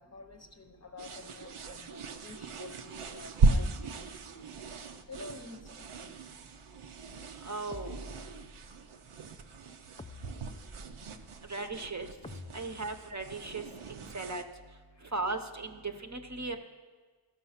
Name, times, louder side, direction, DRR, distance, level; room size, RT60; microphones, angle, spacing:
voice 1, 0.0-4.5 5.1-6.2 11.8-11.9 12.7-12.8 14.9-15.1, left 4 dB, 30° left, 0.8 m, -50 dB
sound 1, 1.0-14.4, right 3 dB, 85° right, 0.7 m, -36 dB
voice 2, 7.4-8.0 11.5-12.1 12.5-13.6 13.9-14.4 15.1-16.6, right 3 dB, 35° right, 0.8 m, -37 dB
sound 2, 7.7-8.8 10.0-11.2 12.2-13.5, left 3 dB, 15° left, 0.4 m, -48 dB
14.0 x 6.2 x 5.7 m
wide cardioid pair, 55°, 49 cm